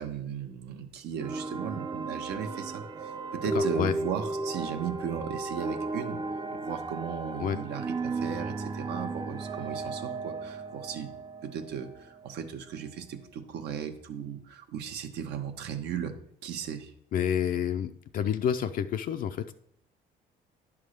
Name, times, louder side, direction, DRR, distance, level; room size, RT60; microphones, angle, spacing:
voice 1, 0.0-6.2 6.6-11.1 11.4-16.1 16.4-16.9, right 7 dB, 75° right, 6 dB, 1.1 m, -36 dB
sound 1, 1.2-12.4, right 3 dB, 25° right, 0.5 m, -35 dB
voice 2, 3.5-3.9 7.4-7.6 17.1-19.5, left 8 dB, 55° left, 7 dB, 0.5 m, -29 dB
9.9 x 3.6 x 6.4 m, 0.71 s
cardioid pair, 110°, 17 cm